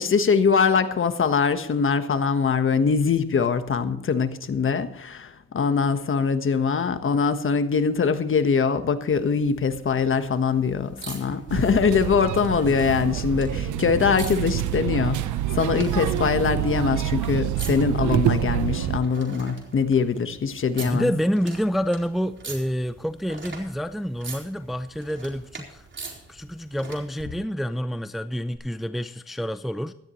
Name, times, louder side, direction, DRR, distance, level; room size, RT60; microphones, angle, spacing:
voice 1, 0.0-15.2 15.5-21.1, left 5 dB, 45° left, 1.4 m, -23 dB
sound 1, 9.1-27.2 28.5-28.6, right 4 dB, 40° right, 4.2 m, -44 dB
sound 2, 11.5-19.0, right 11 dB, 75° right, 1.0 m, -27 dB
voice 2, 20.8-25.9 26.3-29.9, equal, ahead, 0.6 m, -28 dB
17.5 x 13.5 x 3.2 m
cardioid pair, 90°, 30 cm